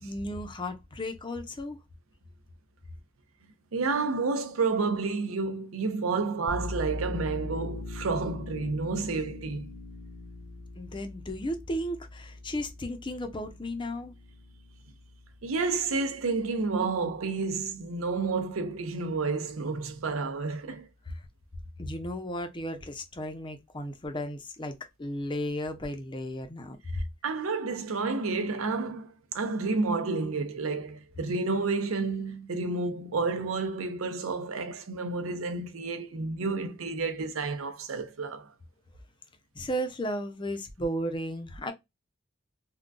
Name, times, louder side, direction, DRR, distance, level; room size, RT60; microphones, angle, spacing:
voice 1, 0.0-1.8 10.8-14.1 21.8-26.8 39.6-41.7, equal, 25° left, 0.6 m, -34 dB
voice 2, 3.7-9.7 15.4-20.9 26.9-38.5, right 4 dB, 80° right, 0.6 m, -30 dB
sound 1, 6.5-17.8, left 2 dB, 85° left, 0.7 m, -41 dB
3.7 x 2.2 x 2.3 m
head